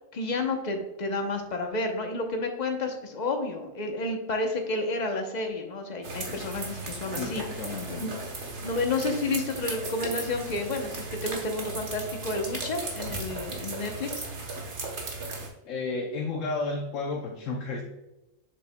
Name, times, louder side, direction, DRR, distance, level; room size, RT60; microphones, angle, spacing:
voice 1, 0.1-7.4 8.0-8.1 8.6-14.3, left 2 dB, 40° left, 4 dB, 0.9 m, -31 dB
sound 1, 6.0-15.5, right 3 dB, 65° right, 1.5 m, -36 dB
voice 2, 7.1-8.0 15.4-17.8, left 3 dB, 75° left, 1 dB, 1.1 m, -32 dB
7.6 x 6.6 x 2.2 m, 0.99 s
omnidirectional pair, 1.3 m